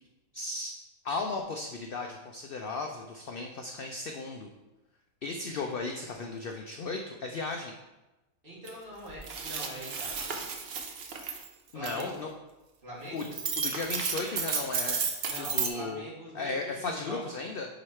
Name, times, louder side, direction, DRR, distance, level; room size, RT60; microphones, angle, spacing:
voice 1, 0.3-0.7 1.0-4.5 5.2-7.7 11.7-12.3 13.1-13.3 13.6-15.1 15.4-16.1 16.3-17.7, left 3 dB, 75° left, 3 dB, 0.5 m, -35 dB
voice 2, 8.4-10.3 11.7-12.2 12.8-13.4 15.3-17.2, right 1 dB, 40° right, -8 dB, 2.4 m, -43 dB
sound 1, 8.7-8.8 9.1-11.5 11.8-12.0 13.2-15.7, right 5 dB, 55° right, 0.8 m, -33 dB
5.1 x 4.8 x 4.2 m, 1.0 s
omnidirectional pair, 1.5 m